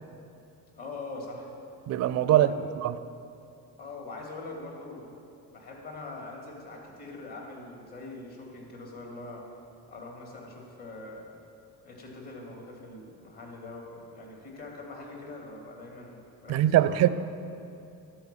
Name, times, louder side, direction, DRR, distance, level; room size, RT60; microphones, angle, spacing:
voice 1, 0.7-1.5 2.3-2.5 3.8-5.1 5.5-9.4 9.9-11.3 11.8-17.0, left 2 dB, 50° left, 0 dB, 2.6 m, -43 dB
voice 2, 1.9-2.5 2.8-2.9 16.5-17.1, right 13 dB, 35° right, 14 dB, 0.4 m, -22 dB
11.5 x 4.7 x 7.2 m, 2.6 s
figure-of-eight pair, 50°, 50 cm